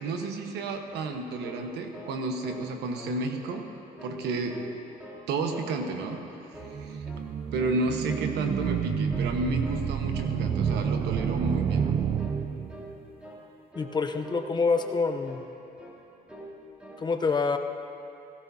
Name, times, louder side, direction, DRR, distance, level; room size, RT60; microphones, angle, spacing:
voice 1, 0.0-3.6 4.0-4.6 5.3-6.2 6.7-7.0 7.5-11.8, right 3 dB, 80° right, 4 dB, 1.2 m, -31 dB
sound 1, 0.7-2.2 2.4-2.7 2.9-3.6 4.0-4.7 5.0-5.7 6.0-6.3 6.5-7.3 7.6-7.8 8.1-8.3 8.6-9.3 9.6-9.8 10.1-10.4 10.6-10.9 11.1-11.4 11.7-11.9 12.2-12.4 12.7-12.9 13.2-13.4 13.7-14.0 14.2-14.5 14.7-15.5 15.8-16.0 16.3-16.5 16.8-17.0, right 1 dB, 5° right, 2.9 m, -45 dB
sound 2, 6.6-12.9, right 7 dB, 35° right, 0.4 m, -29 dB
voice 2, 13.8-15.4 17.0-17.6, left 4 dB, 25° left, 6 dB, 0.7 m, -26 dB
17.0 x 16.5 x 2.8 m, 2.7 s
cardioid pair, 110°, 17 cm